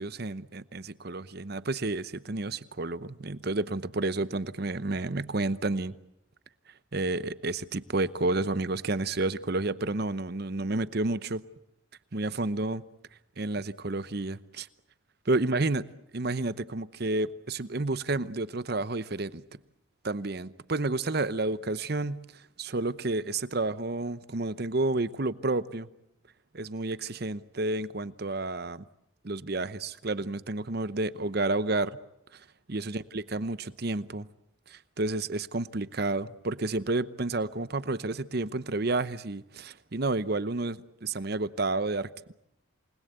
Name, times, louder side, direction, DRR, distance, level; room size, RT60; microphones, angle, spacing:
voice 1, 0.0-6.0 6.9-11.4 12.1-12.8 13.4-14.7 15.3-15.8 16.1-19.4 20.0-25.9 26.5-28.8 29.2-32.0 32.3-34.3 34.7-42.3, right 2 dB, 50° right, 0.9 m, -30 dB
28.0 x 20.5 x 8.1 m
head